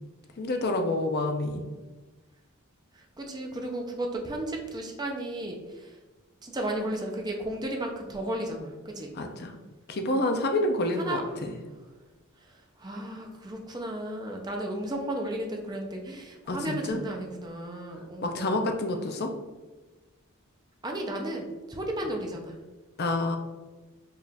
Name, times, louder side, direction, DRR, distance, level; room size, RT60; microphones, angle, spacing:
voice 1, 0.4-1.6 9.2-9.5 9.9-11.5 16.5-17.0 18.2-19.3 23.0-23.4, left 2 dB, 45° left, 5 dB, 0.5 m, -28 dB
voice 2, 2.9-5.9 6.4-9.1 11.0-11.2 12.8-18.6 20.8-22.6, right 1 dB, 20° right, 1 dB, 0.5 m, -34 dB
4.6 x 2.4 x 3.4 m, 1.2 s
head